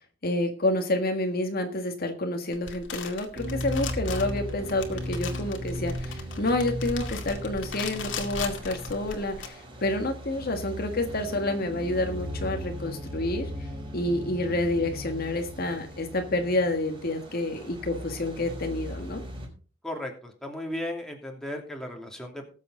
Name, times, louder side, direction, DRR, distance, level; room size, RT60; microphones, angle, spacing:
voice 1, 0.2-13.7 13.9-19.2, left 1 dB, 50° left, 5 dB, 1.7 m, -29 dB
sound 1, 2.5-9.5, left 5 dB, 75° left, 2.2 m, -39 dB
sound 2, 3.3-19.5, equal, 25° right, 4.8 m, -37 dB
voice 2, 19.8-22.5, left 1 dB, 5° left, 1 dB, 2.8 m, -35 dB
19.5 x 7.6 x 3.9 m, 0.38 s
head